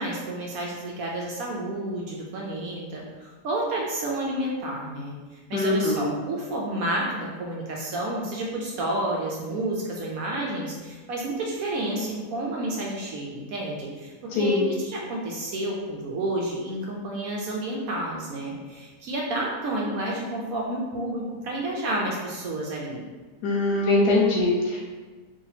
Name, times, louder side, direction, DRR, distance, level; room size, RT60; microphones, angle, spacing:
voice 1, 0.0-23.0, right 1 dB, 70° right, -2 dB, 0.9 m, -30 dB
voice 2, 5.5-6.1 14.3-14.7 23.4-24.8, left 2 dB, 80° left, -2 dB, 1.2 m, -22 dB
2.8 x 2.7 x 4.0 m, 1.4 s
omnidirectional pair, 1.7 m